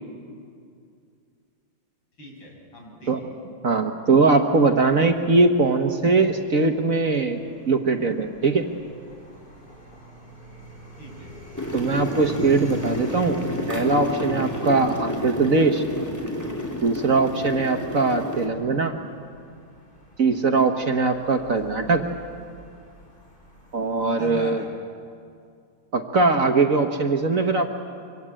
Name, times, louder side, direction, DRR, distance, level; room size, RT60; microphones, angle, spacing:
voice 1, 2.2-3.2 11.0-11.3 21.7-22.0 24.2-24.7, left 1 dB, 75° left, -1 dB, 7.3 m, -40 dB
voice 2, 3.6-7.4 7.7-8.7 11.7-13.4 13.7-15.8 16.8-18.9 20.2-22.0 23.7-24.6 25.9-27.7, right 3 dB, 45° right, 5 dB, 1.5 m, -21 dB
sound 1, 4.3-24.1, equal, 25° left, 5.0 m, -44 dB
sound 2, 11.5-18.5, left 1 dB, 10° left, 2.9 m, -30 dB
25.0 x 24.5 x 8.9 m, 2.3 s
omnidirectional pair, 2.2 m